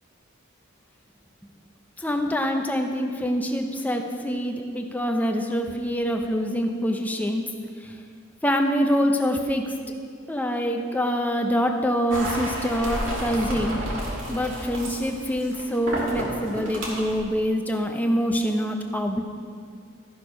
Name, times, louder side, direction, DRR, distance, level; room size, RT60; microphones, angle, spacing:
voice 1, 2.0-7.4 7.8-8.0 8.4-9.7 10.3-13.8 14.3-19.2, equal, 10° left, 3 dB, 0.6 m, -25 dB
sound 1, 12.1-17.2, equal, 70° right, 2.1 m, -31 dB
12.5 x 6.6 x 5.1 m, 2.2 s
head